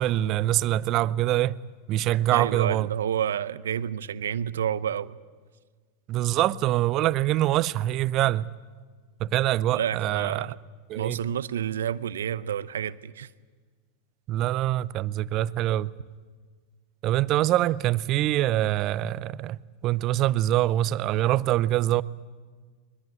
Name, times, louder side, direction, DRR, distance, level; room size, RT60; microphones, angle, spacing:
voice 1, 0.0-1.6 1.9-2.9 6.1-8.5 9.2-10.5 10.9-11.3 14.3-15.9 17.0-22.0, right 14 dB, 45° right, 0.6 m, -24 dB
voice 2, 2.3-5.2 9.7-10.6 11.0-13.3, right 9 dB, 80° right, 0.7 m, -29 dB
21.5 x 21.0 x 9.3 m
hypercardioid pair, 100°, 0 cm